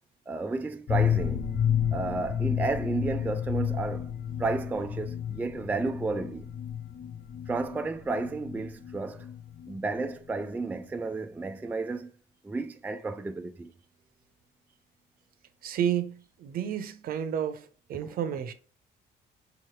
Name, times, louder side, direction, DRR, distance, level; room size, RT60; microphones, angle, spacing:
voice 1, 0.3-1.4 1.9-4.1 4.4-6.5 7.5-9.3 9.7-12.1 12.4-13.7 18.0-18.2, right 3 dB, 10° right, 0.3 m, -32 dB
sound 1, 0.9-10.5 10.7-10.8 11.1-11.2, left 9 dB, 50° left, 0.5 m, -31 dB
voice 2, 15.6-18.5, right 9 dB, 60° right, 0.7 m, -31 dB
5.5 x 3.0 x 3.1 m
cardioid pair, 110°, 17 cm